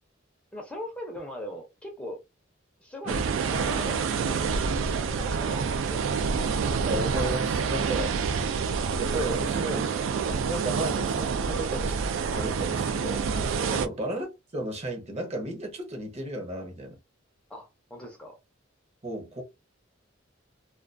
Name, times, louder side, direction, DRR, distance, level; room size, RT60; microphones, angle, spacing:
voice 1, 0.5-2.2 2.8-4.6 5.0-6.5 7.1-7.2 13.6-13.8 17.5-18.4, left 1 dB, 5° left, 0.5 m, -40 dB
sound 1, 3.1-13.9, right 5 dB, 70° right, 0.3 m, -27 dB
voice 2, 6.9-8.2 9.0-9.9 10.5-12.0 12.3-13.3 13.7-17.0 19.0-19.4, right 1 dB, 35° right, 0.7 m, -34 dB
2.3 x 2.2 x 2.5 m
head